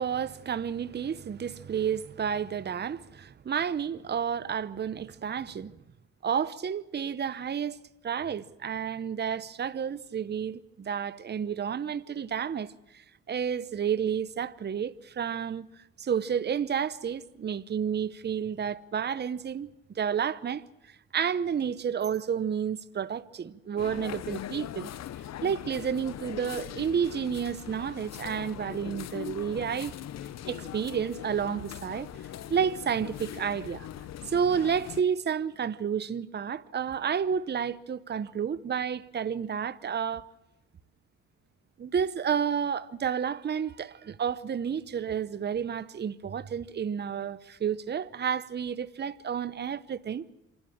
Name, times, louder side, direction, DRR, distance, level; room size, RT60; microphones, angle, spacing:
voice 1, 0.0-5.8 6.2-7.8 8.0-15.7 16.0-24.9 25.4-29.9 30.4-32.1 32.5-33.9 34.2-40.3 41.8-50.2, right 7 dB, 35° right, 0.8 m, -31 dB
sound 1, 23.8-35.0, left 11 dB, 60° left, 0.8 m, -41 dB
26.5 x 12.5 x 8.6 m
cardioid pair, 90°, 30 cm